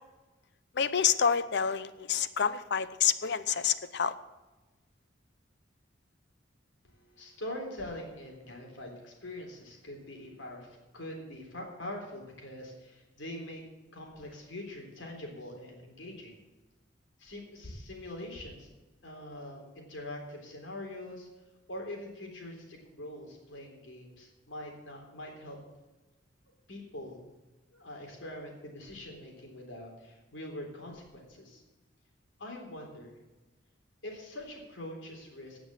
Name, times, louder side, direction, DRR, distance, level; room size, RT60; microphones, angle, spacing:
voice 1, 0.8-4.1, left 7 dB, 60° left, 14 dB, 0.6 m, -28 dB
voice 2, 6.9-13.6 13.9-16.4 17.2-18.7 19.0-21.3 21.7-25.6 26.7-27.2 27.7-31.6 32.4-33.2 34.0-35.6, left 1 dB, 80° left, 1 dB, 3.5 m, -43 dB
17.0 x 6.1 x 7.5 m, 1.1 s
head